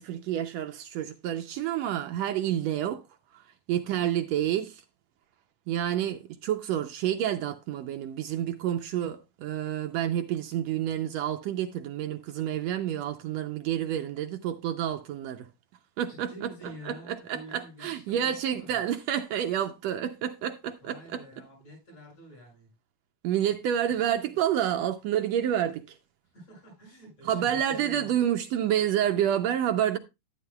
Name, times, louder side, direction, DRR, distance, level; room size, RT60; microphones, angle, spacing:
voice 1, 0.0-3.0 3.7-4.8 5.7-15.5 16.0-21.2 23.2-26.0 27.2-30.0, right 10 dB, 75° right, 1.7 m, -29 dB
voice 2, 16.1-18.8 20.8-22.7 26.3-28.2, equal, 60° left, 7.5 m, -47 dB
11.0 x 10.5 x 2.3 m
omnidirectional pair, 3.3 m